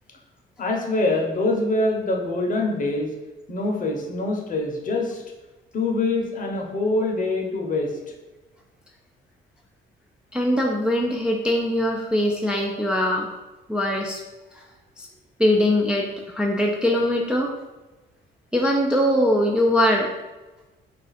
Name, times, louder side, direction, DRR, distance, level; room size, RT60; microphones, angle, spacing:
voice 1, 0.6-3.1 3.5-5.2 5.7-7.9, left 2 dB, 40° left, 0 dB, 0.7 m, -24 dB
voice 2, 10.3-13.3 13.7-14.2 15.0-15.1 15.4-17.5 18.5-20.1, left 1 dB, 5° right, -1 dB, 0.3 m, -21 dB
2.4 x 2.4 x 4.0 m, 1.1 s
cardioid pair, 90°, 20 cm